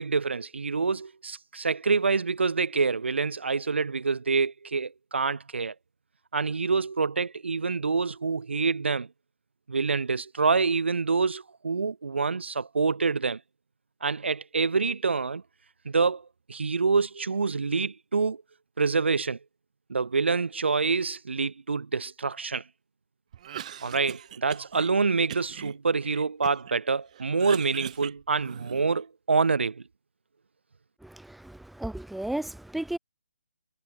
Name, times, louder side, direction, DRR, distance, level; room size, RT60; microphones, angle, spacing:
voice 1, 0.0-5.7 6.3-9.1 9.7-13.4 14.0-15.4 15.8-18.4 18.8-19.4 19.9-22.6 23.8-29.8, right 4 dB, 80° right, 4.2 m, -26 dB
Cough, 23.3-24.9 25.3-26.8 27.1-29.0, right 10 dB, 40° right, 7.9 m, -41 dB
voice 2, 31.0-33.0, right 1 dB, ahead, 3.2 m, -34 dB
hypercardioid pair, 160°, 6 cm